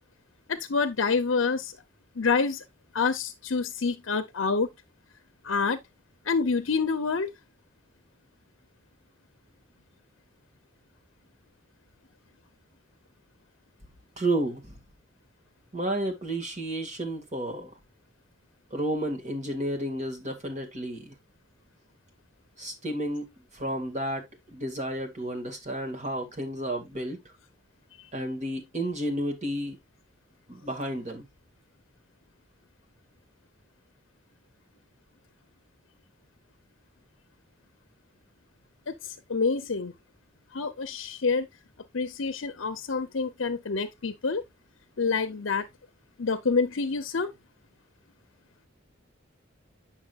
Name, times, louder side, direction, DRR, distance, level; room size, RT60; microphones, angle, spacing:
voice 1, 0.5-1.7 2.2-2.6 2.9-4.7 5.4-5.8 6.3-7.3 39.0-39.9 40.5-41.5 41.9-44.4 45.0-45.7 46.2-47.3, left 4 dB, 80° left, 0.7 m, -27 dB
voice 2, 14.2-14.8 15.7-17.8 18.7-21.1 22.6-23.3 23.5-27.3 28.1-29.8 30.5-31.3, right 1 dB, 35° right, 2.0 m, -31 dB
8.9 x 6.1 x 2.4 m
head